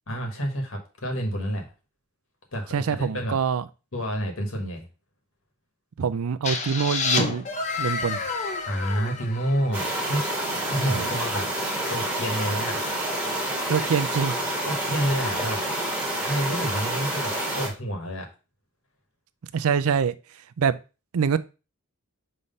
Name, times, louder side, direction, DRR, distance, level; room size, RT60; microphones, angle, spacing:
voice 1, 0.1-1.7 2.5-3.4 3.9-4.9 8.6-10.2 10.7-11.5 11.9-12.9 14.6-15.8 16.2-18.3, equal, 65° left, 1.5 m, -29 dB
voice 2, 2.7-3.6 6.0-7.4 7.8-8.2 10.9-11.1 13.7-14.4 19.5-20.1 20.6-20.8 21.1-21.4, right 6 dB, 80° right, 0.4 m, -24 dB
sound 1, 6.4-10.2, left 4 dB, 35° left, 0.8 m, -29 dB
sound 2, 9.7-17.7, right 1 dB, 5° right, 1.5 m, -28 dB
5.5 x 3.3 x 5.3 m
head